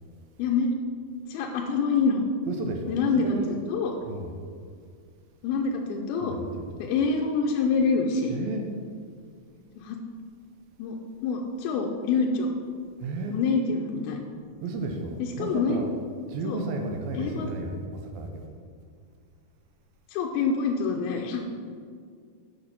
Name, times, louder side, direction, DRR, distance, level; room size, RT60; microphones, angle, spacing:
voice 1, 0.4-0.7 1.3-2.3 2.9-4.0 5.4-6.4 6.8-8.4 9.8-10.0 10.8-11.0 11.2-12.5 13.3-14.2 15.2-15.8 16.4-16.6 17.1-17.5 20.1-21.5, left 4 dB, 85° left, 1 dB, 2.5 m, -26 dB
voice 2, 2.4-3.5 4.0-4.4 6.2-6.9 8.3-8.7 13.0-13.4 14.6-15.9 16.3-18.5, right 3 dB, 80° right, 3 dB, 2.5 m, -33 dB
8.7 x 6.4 x 5.8 m, 2.1 s
omnidirectional pair, 4.4 m